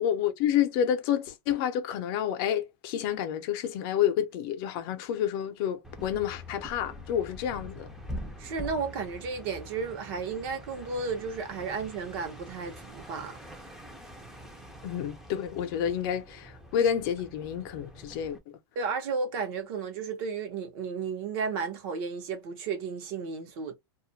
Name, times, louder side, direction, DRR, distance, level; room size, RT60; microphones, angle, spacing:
voice 1, 0.0-7.9 14.8-18.4, left 9 dB, 55° left, 0.6 m, -29 dB
sound 1, 5.8-18.4, equal, 5° right, 0.5 m, -45 dB
voice 2, 8.4-13.4 18.8-23.7, right 5 dB, 60° right, 0.8 m, -33 dB
2.3 x 2.1 x 2.6 m
supercardioid pair, 135°, 14 cm